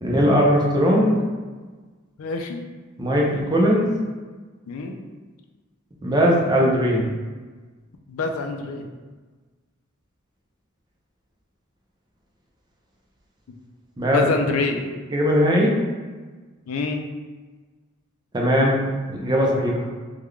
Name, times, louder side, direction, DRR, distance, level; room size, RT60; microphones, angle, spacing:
voice 1, 0.0-1.2 3.0-3.9 6.0-7.1 14.0-14.2 15.1-15.8 18.3-19.9, equal, 20° right, -2 dB, 0.5 m, -19 dB
voice 2, 2.2-2.6 4.7-5.0 8.1-8.9 14.0-14.8 16.7-17.0, left 4 dB, 75° left, 3 dB, 0.4 m, -26 dB
3.7 x 2.3 x 3.2 m, 1.4 s
head